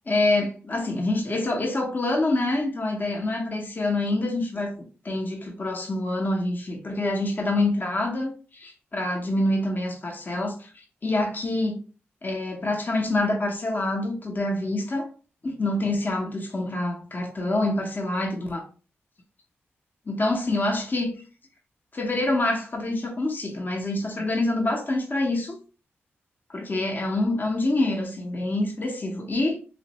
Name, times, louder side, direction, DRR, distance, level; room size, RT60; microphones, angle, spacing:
voice 1, 0.1-11.8 12.2-15.1 15.4-18.6 20.1-21.1 21.9-25.6 26.5-29.6, left 2 dB, 40° left, 0.8 m, -26 dB
3.0 x 2.4 x 2.9 m
cardioid pair, 60°, 5 cm